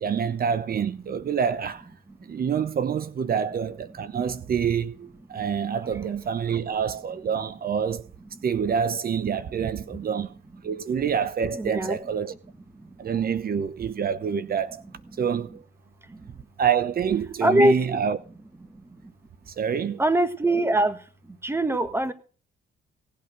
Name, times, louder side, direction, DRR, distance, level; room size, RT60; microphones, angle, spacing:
voice 1, 0.0-1.8 2.3-8.0 8.4-10.3 10.6-12.3 13.0-14.8 15.2-15.6 16.6-18.2 19.5-20.0, right 7 dB, 50° right, 0.9 m, -27 dB
voice 2, 11.6-12.0 17.4-17.7 20.0-21.0 21.4-22.1, right 1 dB, 10° right, 1.6 m, -21 dB
18.0 x 8.6 x 6.0 m
cardioid pair, 90°, 20 cm